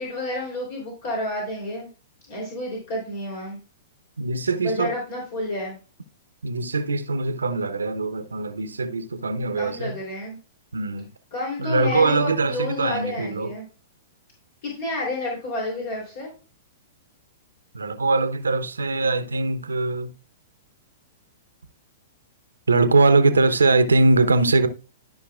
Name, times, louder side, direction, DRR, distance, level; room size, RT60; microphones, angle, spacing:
voice 1, 0.0-1.9 2.3-3.6 4.6-5.8 9.6-10.4 11.3-13.7 14.6-16.3, left 1 dB, 55° left, 3.3 m, -30 dB
voice 2, 4.2-4.9 6.4-10.0 10.7-11.1 11.6-13.5 17.7-20.1 22.7-24.7, right 3 dB, 80° right, 0.9 m, -21 dB
13.0 x 5.4 x 2.4 m
figure-of-eight pair, 110°, 0 cm